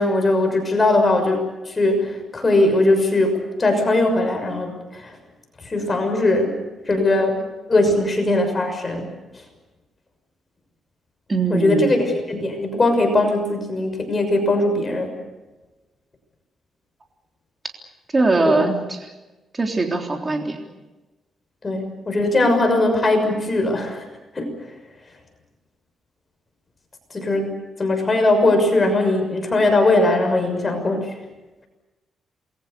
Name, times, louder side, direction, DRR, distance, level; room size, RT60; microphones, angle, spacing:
voice 1, 0.0-5.1 5.6-6.5 6.9-7.4 7.7-9.1 11.5-15.2 18.4-18.7 21.6-24.1 24.3-24.5 27.1-31.1, left 2 dB, 30° left, 5 dB, 6.3 m, -20 dB
voice 2, 11.3-12.0 18.1-18.8 19.6-20.6, right 3 dB, 25° right, 2 dB, 3.5 m, -20 dB
28.5 x 21.5 x 6.9 m, 1.1 s
cardioid pair, 100°, 0 cm